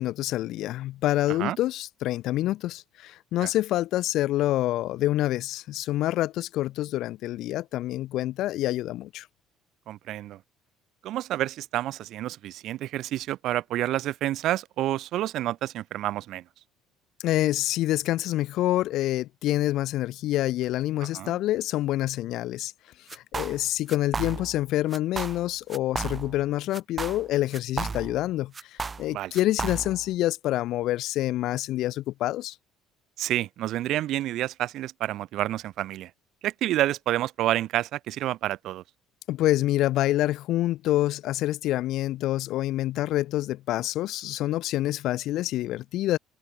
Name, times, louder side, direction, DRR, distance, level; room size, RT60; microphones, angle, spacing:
voice 1, 0.0-9.3 17.2-22.7 23.1-32.6 39.3-46.2, left 15 dB, 65° left, 0.7 m, -27 dB
voice 2, 9.9-10.4 11.0-16.4 21.1-21.4 29.1-29.3 33.2-36.1 36.4-38.8, right 14 dB, 65° right, 0.5 m, -29 dB
sound 1, 23.1-23.6 23.9-24.6 24.9-25.4 25.7-26.4 26.7-28.3 28.5-30.1, right 4 dB, 25° right, 1.0 m, -33 dB
cardioid pair, 120°, 0 cm